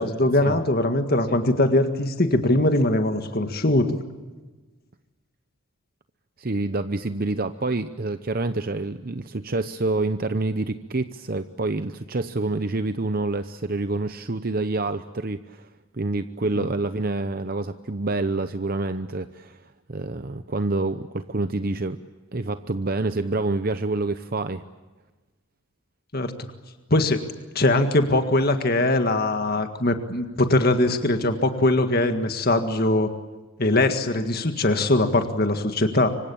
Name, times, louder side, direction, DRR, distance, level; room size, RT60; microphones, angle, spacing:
voice 1, 0.0-4.0 16.6-16.7 26.1-26.3 26.9-27.2 27.6-33.1 33.6-36.1, left 2 dB, 45° left, 7 dB, 1.8 m, -21 dB
voice 2, 6.4-15.7 15.9-19.6 19.9-22.0 22.3-24.6, right 2 dB, 45° right, 10 dB, 0.8 m, -27 dB
26.5 x 25.0 x 8.7 m, 1.3 s
head